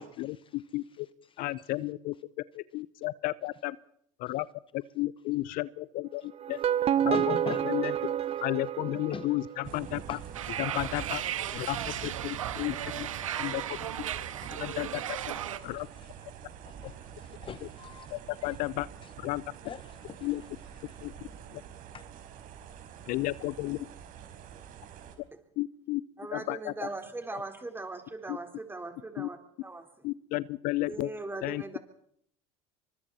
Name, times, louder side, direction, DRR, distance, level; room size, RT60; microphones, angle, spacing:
voice 1, 0.0-1.7 4.3-4.4 6.2-6.7 7.1-8.0 8.9-9.3 9.7-10.3 13.8-16.2 16.6-18.1 18.4-18.6 19.0-19.1 19.6-21.0 21.9-22.0, left 7 dB, 30° left, 1.0 m, -45 dB
voice 2, 0.5-1.1 1.4-2.1 2.5-3.8 4.2-4.5 5.0-6.2 6.5-6.6 7.0-7.2 7.6-7.9 8.4-10.2 10.6-11.2 11.5-13.1 13.4-13.8 14.6-15.0 15.6-15.9 18.4-18.9 19.2-19.4 20.2-20.4 21.0-21.1 21.5-21.6 23.1-23.8 25.6-26.0 26.3-26.7 28.3-28.4 29.2-29.3 30.0-31.1 31.4-31.6, left 18 dB, 60° left, 0.8 m, -32 dB
sound 1, 6.4-9.6, right 10 dB, 35° right, 0.8 m, -29 dB
sound 2, 9.6-25.2, right 8 dB, 55° right, 4.4 m, -46 dB
sound 3, 10.3-15.6, right 11 dB, 90° right, 1.4 m, -35 dB
voice 3, 26.2-29.4 29.6-29.9 30.9-31.8, right 2 dB, 15° right, 4.1 m, -39 dB
28.5 x 25.0 x 4.3 m
hypercardioid pair, 80°, 17 cm